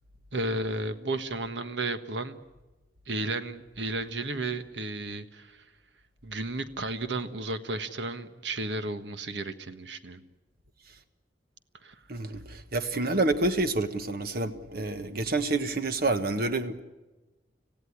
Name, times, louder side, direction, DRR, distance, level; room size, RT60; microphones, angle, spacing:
voice 1, 0.3-2.4 3.1-5.6 6.2-10.2 11.8-12.0, right 2 dB, 75° right, 1.4 m, -33 dB
voice 2, 12.1-16.8, right 2 dB, 55° right, 1.5 m, -28 dB
26.5 x 16.5 x 9.8 m
head